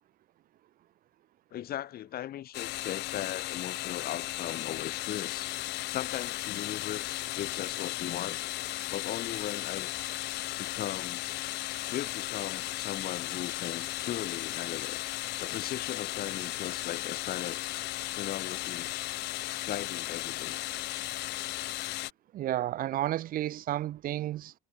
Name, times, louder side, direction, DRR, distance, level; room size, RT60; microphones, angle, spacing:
voice 1, 1.5-5.5 5.9-8.4 8.9-9.9 10.6-11.2 11.9-15.0 15.4-17.6 18.2-18.9 19.6-20.6, left 12 dB, 65° left, 4.8 m, -38 dB
sound 1, 2.5-22.1, left 18 dB, 80° left, 2.2 m, -36 dB
voice 2, 22.3-24.5, right 13 dB, 55° right, 0.5 m, -32 dB
cardioid pair, 110°, 17 cm